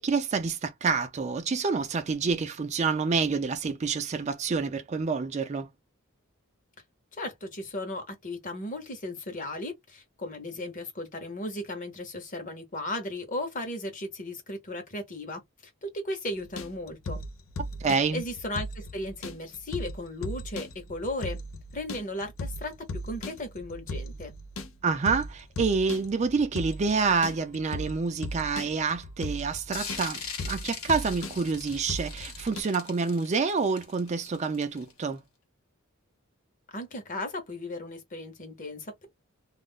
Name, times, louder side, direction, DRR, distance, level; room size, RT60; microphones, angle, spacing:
voice 1, 0.0-5.7 17.8-18.2 24.8-35.2, right 4 dB, 35° right, 0.4 m, -28 dB
voice 2, 7.1-17.2 18.1-21.4 21.7-22.8 23.0-24.3 36.7-39.1, left 1 dB, 40° left, 0.9 m, -36 dB
sound 1, 16.4-32.6, left 1 dB, 70° left, 0.5 m, -38 dB
sound 2, 29.7-35.0, left 5 dB, 90° left, 1.2 m, -41 dB
2.4 x 2.0 x 3.4 m
head